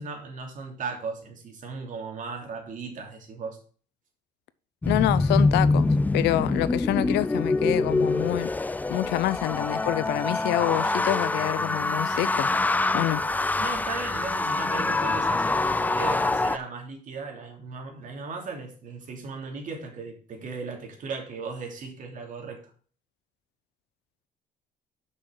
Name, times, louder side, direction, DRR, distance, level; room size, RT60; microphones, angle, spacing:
voice 1, 0.0-3.6 13.2-22.7, right 4 dB, 50° right, 2.8 m, -37 dB
sound 1, 4.8-16.6, left 2 dB, 10° left, 0.3 m, -25 dB
voice 2, 4.9-8.5 8.9-12.5 12.9-13.2, left 16 dB, 80° left, 0.6 m, -27 dB
6.4 x 6.0 x 6.5 m
cardioid pair, 110°, 17 cm